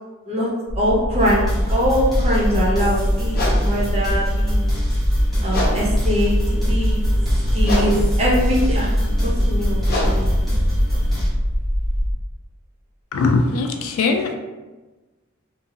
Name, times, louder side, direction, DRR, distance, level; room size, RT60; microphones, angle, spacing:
sound 1, 0.7-12.2, equal, 70° right, 1.4 m, -21 dB
voice 1, 0.8-4.6 5.4-7.0 7.5-9.0 9.2-10.3, equal, 30° right, -5 dB, 0.6 m, -22 dB
sound 2, 1.2-11.3, equal, ahead, 1.0 m, -29 dB
sound 3, 3.3-12.0, left 1 dB, 45° left, 0.8 m, -31 dB
voice 2, 13.1-14.3, left 3 dB, 85° left, 5 dB, 0.3 m, -20 dB
2.7 x 2.7 x 2.6 m, 1.2 s
head